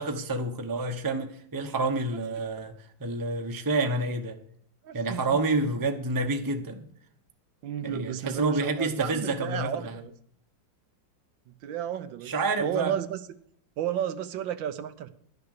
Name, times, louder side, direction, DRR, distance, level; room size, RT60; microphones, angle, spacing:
voice 1, 0.0-2.7 3.0-4.4 4.9-6.9 7.8-9.9 12.2-12.9, right 2 dB, 15° right, 0.7 m, -28 dB
voice 2, 4.8-5.4 7.6-10.1 11.5-13.2 13.8-15.1, right 10 dB, 80° right, 1.5 m, -33 dB
12.0 x 6.8 x 6.6 m
omnidirectional pair, 2.0 m